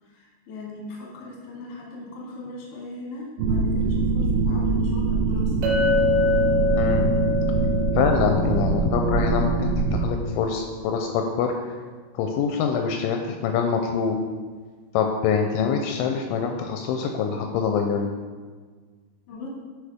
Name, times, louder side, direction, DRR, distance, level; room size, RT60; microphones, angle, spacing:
voice 1, 0.0-5.5 19.3-19.5, left 2 dB, 60° left, -4 dB, 1.6 m, -39 dB
sound 1, 3.4-10.1, right 4 dB, 90° right, 2.4 m, -23 dB
Chink clink, 5.6-9.9, left 4 dB, 75° right, 3.0 m, -26 dB
voice 2, 6.7-7.1 8.0-11.5 12.1-14.2 14.9-18.1, left 6 dB, 85° left, 4 dB, 2.8 m, -25 dB
10.0 x 4.7 x 3.5 m, 1.5 s
omnidirectional pair, 5.7 m